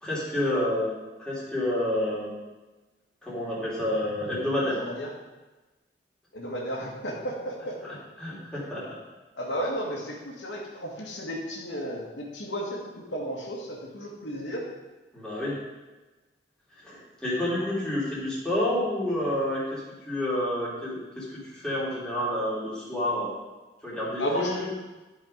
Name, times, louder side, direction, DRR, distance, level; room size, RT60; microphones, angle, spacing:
voice 1, 0.0-0.9 1.2-2.3 3.2-4.8 7.8-9.0 15.1-15.6 16.8-23.3 23.8-24.7, left 1 dB, 5° left, -9 dB, 3.1 m, -29 dB
voice 2, 4.8-5.1 6.3-7.8 9.4-14.7 24.2-24.7, equal, 85° left, -2 dB, 1.9 m, -33 dB
11.5 x 4.9 x 5.1 m, 1.2 s
head